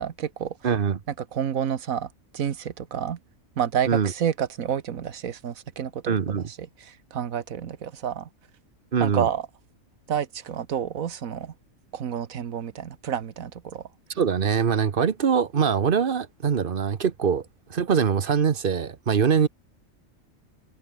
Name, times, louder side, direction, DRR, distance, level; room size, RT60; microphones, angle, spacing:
voice 1, 0.0-0.5 1.2-3.2 3.6-8.3 9.0-9.5 10.1-11.5 11.9-13.8, right 8 dB, 80° right, 1.5 m, -29 dB
voice 2, 0.6-1.0 3.9-4.1 6.1-6.5 8.9-9.3 14.2-17.4 17.7-19.5, right 7 dB, 45° right, 1.0 m, -23 dB
omnidirectional pair, 1.4 m